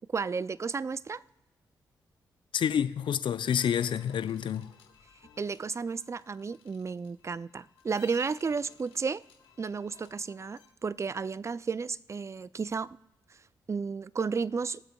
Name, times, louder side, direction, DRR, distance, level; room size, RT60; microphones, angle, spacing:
voice 1, 0.1-1.2 5.4-9.2 9.6-13.0 13.7-14.8, right 5 dB, 30° right, 0.4 m, -33 dB
voice 2, 2.5-4.7, left 8 dB, 60° left, 0.5 m, -28 dB
sound 1, 3.4-10.7, left 7 dB, 80° left, 1.3 m, -56 dB
20.5 x 7.7 x 2.3 m
hypercardioid pair, 40°, 9 cm